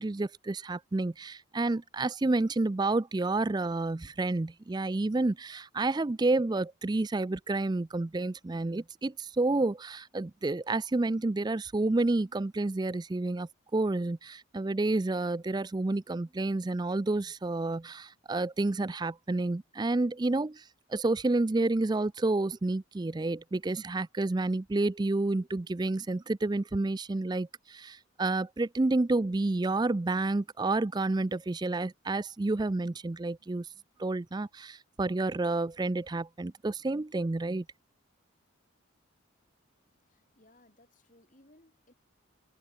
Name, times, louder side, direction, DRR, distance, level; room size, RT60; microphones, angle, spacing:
voice 1, 0.0-20.6 20.9-33.7 34.0-37.6, right 2 dB, 20° right, 0.4 m, -30 dB
voice 2, 39.7-41.9, left 1 dB, 40° left, 5.2 m, -63 dB
head